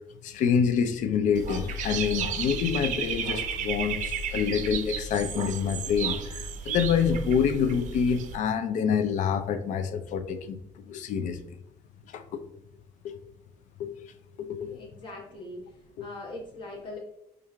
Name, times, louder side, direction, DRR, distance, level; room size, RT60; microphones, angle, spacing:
voice 1, 0.2-11.4 12.1-12.2 13.0-13.1 13.8-13.9 14.4-14.8 16.0-16.1, left 7 dB, 80° left, 10 dB, 0.4 m, -27 dB
Dog / Bird, 1.4-8.4, right 5 dB, 90° right, 0.4 m, -33 dB
voice 2, 14.7-17.0, left 2 dB, 40° left, -2 dB, 1.2 m, -41 dB
4.5 x 2.4 x 3.3 m, 0.77 s
cardioid pair, 165°, 13 cm